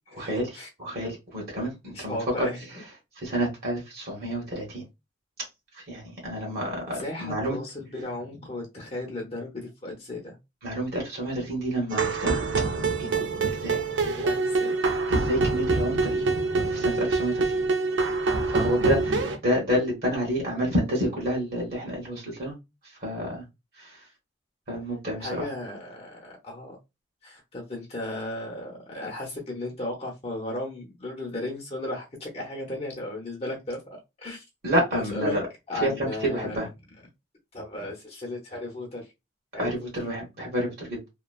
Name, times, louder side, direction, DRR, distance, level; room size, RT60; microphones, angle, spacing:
voice 1, 0.1-2.5 3.2-4.8 5.7-7.6 10.6-12.4 13.0-13.8 15.1-16.2 16.6-17.5 18.5-22.5 23.0-23.4 23.8-24.0 24.7-25.5 34.6-35.4 35.8-36.7 39.6-41.0, equal, 55° right, 1.2 m, -29 dB
voice 2, 1.9-2.6 7.0-10.4 14.0-14.8 25.2-26.8 27.2-33.8 34.2-34.4 34.9-35.4 35.7-36.7 37.5-39.1 39.5-39.9, left 1 dB, 35° left, 0.7 m, -35 dB
sound 1, 11.9-19.4, right 3 dB, 85° right, 0.6 m, -25 dB
3.0 x 2.1 x 2.2 m
head